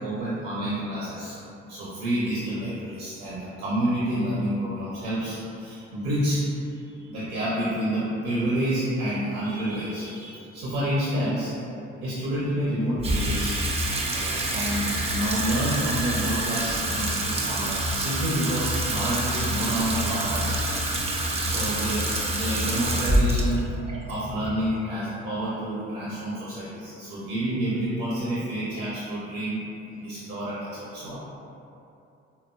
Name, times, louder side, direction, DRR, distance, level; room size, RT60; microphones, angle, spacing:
voice 1, 0.0-1.4 1.7-11.5 12.0-13.6 14.0-20.5 20.8-21.0 21.4-23.7 24.1-29.6 29.9-31.2, right 1 dB, 60° right, -9 dB, 0.7 m, -29 dB
Water tap faucet / Sink (filling or washing), 13.0-25.4, right 1 dB, 20° right, 0.4 m, -27 dB
3.7 x 2.1 x 2.2 m, 2.7 s
figure-of-eight pair, 45°, 34 cm